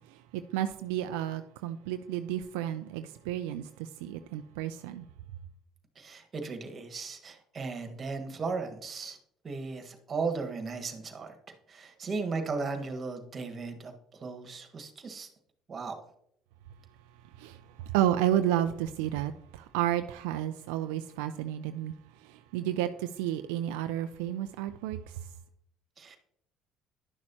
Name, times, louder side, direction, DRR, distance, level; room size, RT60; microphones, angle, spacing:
voice 1, 0.1-5.1 17.4-25.3, right 12 dB, 85° right, 0.4 m, -32 dB
voice 2, 5.9-9.2 9.4-13.9 14.2-15.3 15.7-15.9 26.0-26.2, right 4 dB, 40° right, 1.5 m, -36 dB
11.0 x 6.3 x 2.9 m
supercardioid pair, 75°, 0 cm